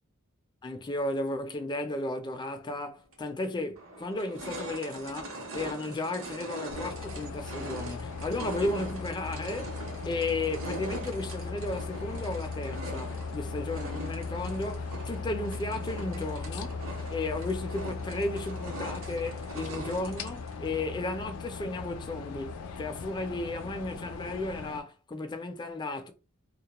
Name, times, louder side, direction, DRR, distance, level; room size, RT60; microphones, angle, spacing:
voice 1, 0.6-9.7 10.0-16.8 17.1-22.5 22.8-26.1, left 2 dB, 20° left, 0.4 m, -34 dB
sound 1, 3.1-3.2 3.8-20.6, right 1 dB, 70° right, 0.8 m, -42 dB
sound 2, 6.7-24.8, left 4 dB, 90° left, 0.4 m, -38 dB
2.2 x 2.1 x 2.9 m
head